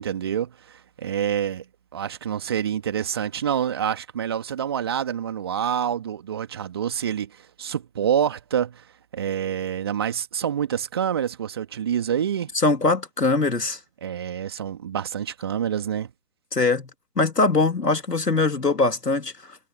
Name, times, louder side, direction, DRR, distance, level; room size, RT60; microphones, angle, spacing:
voice 1, 0.0-1.7 1.9-8.8 9.1-12.5 14.0-16.1, right 9 dB, 15° right, 2.3 m, -27 dB
voice 2, 12.5-13.8 16.5-16.9 17.2-19.6, left 3 dB, 70° left, 2.8 m, -22 dB
figure-of-eight pair, 160°, 49 cm